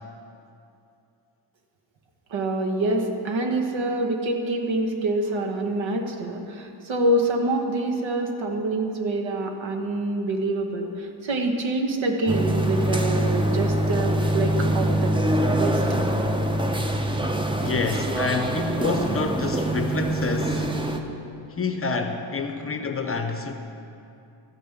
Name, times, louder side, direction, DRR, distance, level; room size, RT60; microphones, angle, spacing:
voice 1, 2.3-15.1 15.5-15.8, right 2 dB, 65° right, 3 dB, 1.4 m, -26 dB
sound 1, 12.3-21.0, right 1 dB, 10° right, 0.7 m, -24 dB
voice 2, 17.6-20.7 21.5-23.5, left 4 dB, 30° left, 5 dB, 0.7 m, -28 dB
13.5 x 5.4 x 6.7 m, 2.7 s
cardioid pair, 110°, 49 cm